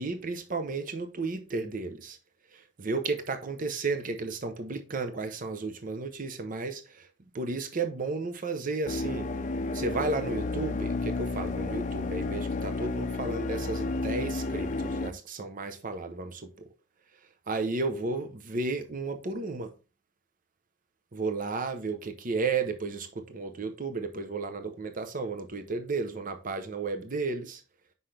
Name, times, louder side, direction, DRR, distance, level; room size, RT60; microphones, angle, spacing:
voice 1, 0.0-2.2 2.5-7.1 7.3-9.3 9.7-16.5 17.5-19.7 21.1-27.6, right 3 dB, 45° right, 0.7 m, -33 dB
sound 1, 8.9-15.1, left 3 dB, 40° left, 0.5 m, -31 dB
5.8 x 5.5 x 3.3 m
head